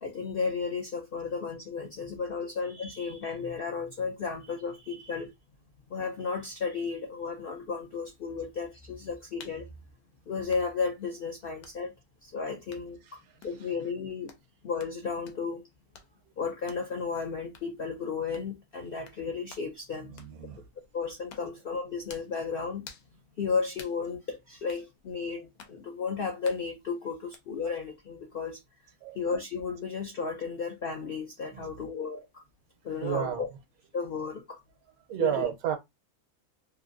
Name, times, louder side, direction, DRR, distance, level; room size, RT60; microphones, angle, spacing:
voice 1, 0.0-5.3 5.9-9.7 10.3-11.9 12.2-13.0 13.4-14.3 14.6-15.6 16.4-20.1 20.9-22.9 23.4-28.6 29.1-32.4 32.8-33.5 33.9-34.6 35.2-35.5, left 5 dB, 70° left, 0.5 m, -33 dB
sound 1, 9.4-9.6 10.5-10.7 11.6-11.8 12.7-12.9 13.4-13.6 14.3-14.4 14.8-15.0 15.3-15.4 15.9-16.1 16.7-16.9 17.5-17.7 18.3-18.5 19.0-19.2 19.5-19.7 20.2-20.4 21.3-21.5 22.1-22.3 22.8-23.1 23.8-24.0 24.7-24.8 25.6-25.8 26.4-26.7 27.3-27.4, left 6 dB, 90° left, 1.2 m, -49 dB
voice 2, 13.1-13.9 20.0-20.6 21.4-21.5 29.0-29.2 31.5-31.9 33.0-33.5 35.1-35.8, right 10 dB, 80° right, 1.1 m, -33 dB
2.9 x 2.5 x 2.4 m
omnidirectional pair, 1.6 m